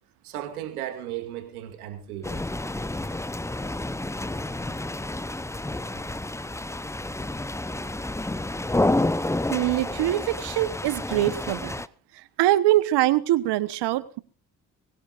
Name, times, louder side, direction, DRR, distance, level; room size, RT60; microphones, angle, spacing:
voice 1, 0.2-2.4, right 11 dB, 90° right, 6 dB, 2.4 m, -35 dB
sound 1, 2.2-11.9, left 2 dB, 5° left, 0.7 m, -29 dB
voice 2, 9.5-11.8 12.1-14.2, right 15 dB, 70° right, 16 dB, 1.2 m, -23 dB
24.0 x 16.5 x 2.5 m, 0.37 s
hypercardioid pair, 45°, 43 cm